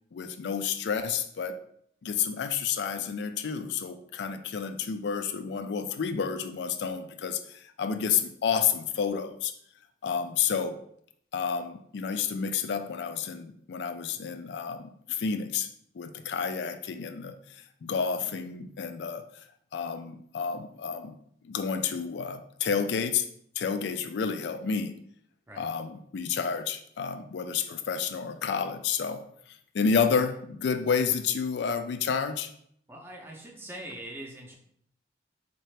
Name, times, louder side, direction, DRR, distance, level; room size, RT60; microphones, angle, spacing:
voice 1, 0.1-1.6 2.0-9.5 10.0-10.8 11.3-15.7 15.9-19.3 19.7-21.2 21.4-23.3 23.6-24.9 25.6-29.2 29.5-32.5, left 6 dB, 70° left, 10 dB, 0.3 m, -30 dB
voice 2, 32.9-34.6, right 1 dB, 10° right, 0 dB, 0.6 m, -42 dB
4.2 x 2.8 x 3.2 m, 0.68 s
head